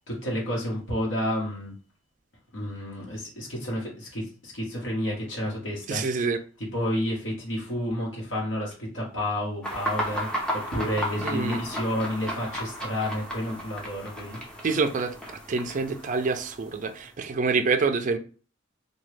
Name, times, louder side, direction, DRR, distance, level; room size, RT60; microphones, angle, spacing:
voice 1, 0.1-1.7 2.5-6.0 6.7-14.4, left 1 dB, 65° left, 1.1 m, -30 dB
voice 2, 5.9-6.4 11.2-11.6 14.6-15.2 15.5-18.2, right 4 dB, 40° right, 0.4 m, -26 dB
sound 1, 9.6-17.1, equal, 5° left, 0.6 m, -34 dB
3.0 x 2.3 x 3.2 m
head